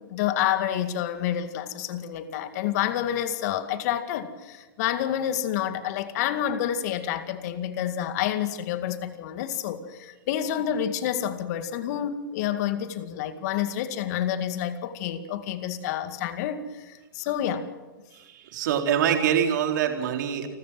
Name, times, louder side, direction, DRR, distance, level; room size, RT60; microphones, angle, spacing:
voice 1, 0.1-17.6, left 10 dB, 50° left, 10 dB, 2.1 m, -28 dB
voice 2, 18.1-20.5, right 9 dB, 55° right, 4 dB, 3.9 m, -25 dB
29.0 x 13.5 x 7.7 m, 1.2 s
hypercardioid pair, 125°, 12 cm